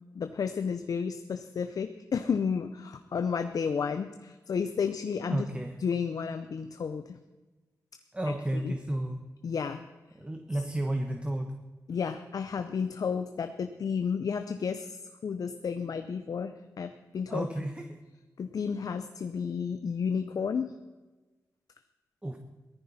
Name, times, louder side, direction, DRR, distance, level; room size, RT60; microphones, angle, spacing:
voice 1, 0.1-5.5 5.8-7.2 8.6-8.7 9.4-9.8 11.9-17.5 18.4-20.7, left 6 dB, 70° left, 8 dB, 0.7 m, -32 dB
voice 2, 5.3-5.7 8.1-9.2 10.2-11.5 17.3-18.0 22.2-22.4, right 1 dB, 15° right, 5 dB, 1.2 m, -32 dB
18.0 x 14.0 x 4.3 m, 1.2 s
cardioid pair, 70°, 6 cm